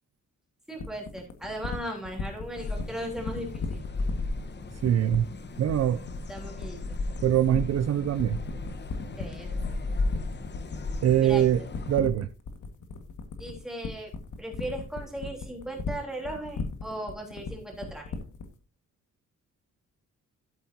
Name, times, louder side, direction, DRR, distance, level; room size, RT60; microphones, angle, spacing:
voice 1, 0.7-3.8 6.3-6.8 9.2-9.6 11.2-11.5 13.4-14.1 14.4-18.2, right 1 dB, ahead, 3.5 m, -37 dB
sound 1, 0.8-18.5, left 5 dB, 80° left, 1.9 m, -36 dB
sound 2, 2.6-12.0, left 2 dB, 35° left, 1.0 m, -35 dB
voice 2, 4.8-5.3 5.6-6.0 7.2-8.4 11.0-11.6 11.9-12.3, right 11 dB, 55° right, 0.5 m, -23 dB
13.0 x 8.5 x 2.8 m
wide cardioid pair, 165°, 30 cm